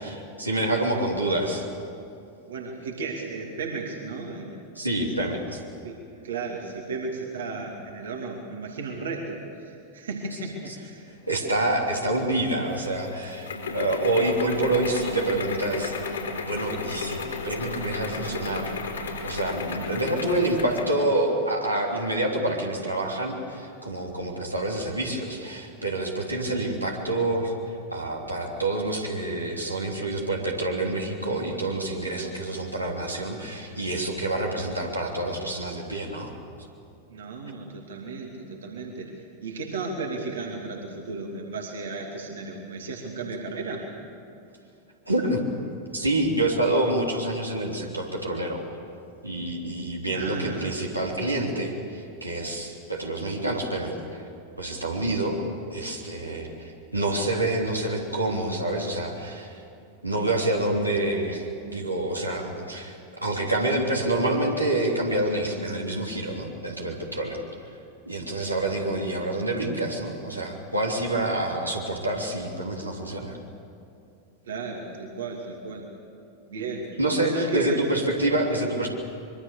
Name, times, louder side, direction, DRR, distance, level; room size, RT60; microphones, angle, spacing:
voice 1, 0.0-1.6 4.7-5.6 10.7-10.8 11.3-18.7 19.2-27.5 27.9-36.3 45.1-45.4 45.9-48.6 49.2-54.2 54.6-55.4 55.7-59.5 60.0-67.4 68.0-73.4 77.0-78.9, right 1 dB, 85° right, -1 dB, 3.2 m, -27 dB
voice 2, 2.5-4.5 5.0-5.3 5.8-6.0 6.2-11.1 37.1-39.1 39.4-43.9 50.1-50.7 74.5-75.9 76.5-76.9 77.2-77.8, right 3 dB, 65° right, 1 dB, 2.7 m, -34 dB
sound 1, 12.2-21.0, left 4 dB, 70° left, 4.0 m, -33 dB
24.5 x 23.0 x 6.9 m, 2.6 s
figure-of-eight pair, 90°, 0 cm